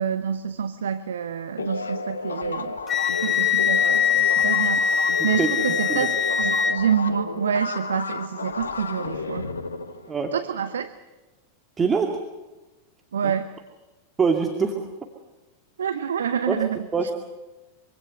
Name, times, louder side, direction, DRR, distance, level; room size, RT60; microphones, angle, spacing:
voice 1, 0.0-2.8 3.2-9.5 10.3-10.9 13.1-13.5 15.8-17.1, right 7 dB, 65° right, 12 dB, 0.9 m, -27 dB
sound 1, 1.6-10.7, left 3 dB, 75° left, 1.4 m, -32 dB
Wind instrument woodwind instrument, 2.9-6.8, left 7 dB, 25° left, 1.4 m, -22 dB
voice 2, 11.8-12.2 13.2-13.3 14.2-14.8 16.5-16.6 16.9-17.1, right 5 dB, 20° right, 3 dB, 2.3 m, -24 dB
25.0 x 25.0 x 6.8 m, 1.2 s
figure-of-eight pair, 90°, 0 cm